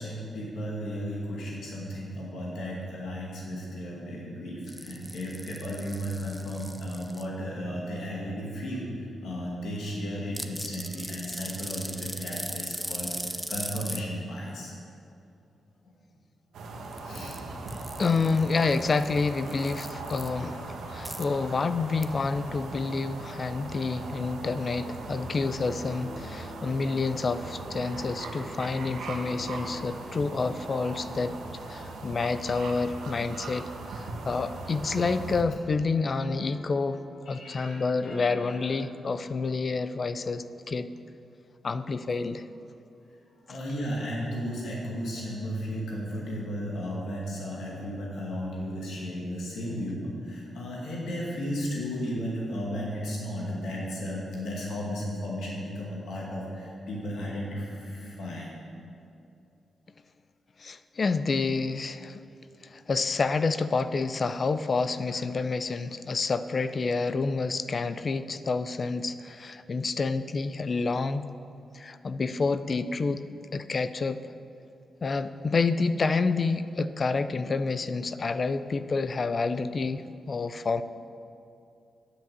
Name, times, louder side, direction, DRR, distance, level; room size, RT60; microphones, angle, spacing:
voice 1, 0.0-14.7 17.0-17.4 37.3-38.3 43.5-58.5, equal, 85° left, -4 dB, 2.2 m, -34 dB
sound 1, 4.7-7.2 10.3-14.0 16.8-17.4 17.7-20.3 21.0-21.2 22.0-22.1, equal, ahead, 0.7 m, -38 dB
sound 2, 16.5-35.4, right 3 dB, 90° right, 1.2 m, -39 dB
voice 2, 18.0-31.4 31.7-37.0 37.3-40.9 41.6-42.5 60.6-62.2 62.6-71.3 71.7-73.2 73.5-74.3 75.0-80.8, left 4 dB, 45° left, 12 dB, 0.4 m, -28 dB
Keyboard (musical), 25.8-35.3 35.6-35.7 35.9-40.3, left 2 dB, 60° left, 1.3 m, -49 dB
10.0 x 5.9 x 7.6 m, 2.6 s
cardioid pair, 85°, 0 cm